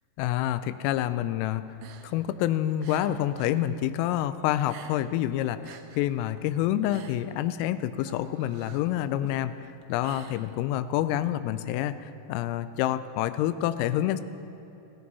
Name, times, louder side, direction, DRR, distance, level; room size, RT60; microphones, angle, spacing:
voice 1, 0.2-1.6 2.0-9.5 9.9-14.2, left 12 dB, 90° left, 12 dB, 3.2 m, -27 dB
sound 1, 1.7-3.6 3.9-5.2 5.5-10.9, right 8 dB, 75° right, 2.9 m, -50 dB
18.5 x 15.5 x 4.1 m, 3.0 s
omnidirectional pair, 5.8 m